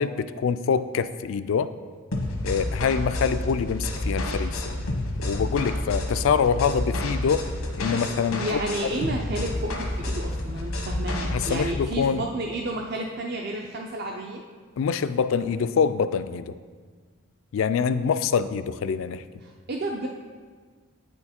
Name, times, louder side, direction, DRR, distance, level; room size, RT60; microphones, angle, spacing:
voice 1, 0.0-1.7 2.4-4.6 5.2-7.5 7.8-8.6 11.3-12.2 14.8-16.5 17.5-19.2, left 6 dB, 70° left, 13 dB, 0.3 m, -25 dB
sound 1, 2.1-11.8, left 1 dB, 90° left, 1.0 m, -30 dB
voice 2, 8.4-14.4 19.4-20.1, right 2 dB, 50° right, 1 dB, 0.4 m, -31 dB
8.7 x 4.5 x 4.3 m, 1.6 s
head